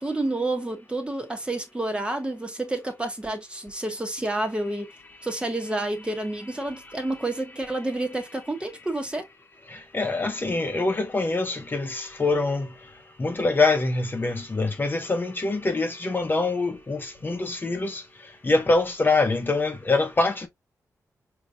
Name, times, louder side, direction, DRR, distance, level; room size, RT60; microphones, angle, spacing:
voice 1, 0.0-4.9 5.2-9.2, right 2 dB, 15° right, 1.1 m, -29 dB
voice 2, 9.9-12.7 13.2-18.0 18.4-20.5, left 3 dB, 35° left, 0.9 m, -24 dB
5.0 x 2.9 x 2.4 m
cardioid pair, 75°, 6 cm